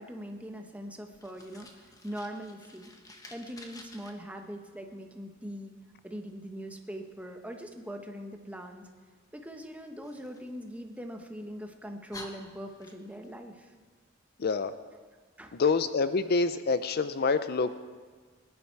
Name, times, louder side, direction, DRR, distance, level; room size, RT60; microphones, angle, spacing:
voice 1, 0.0-2.9 3.3-5.7 6.0-8.9 9.3-13.7 15.4-15.7, equal, 5° right, 3 dB, 1.1 m, -42 dB
Fire, 1.1-4.1 10.0-11.3 11.7-11.8 12.1-13.3, left 2 dB, 20° left, 1.2 m, -50 dB
voice 2, 14.4-14.7 15.5-17.8, left 4 dB, 50° left, 12 dB, 0.5 m, -27 dB
20.5 x 10.5 x 4.7 m, 1.5 s
head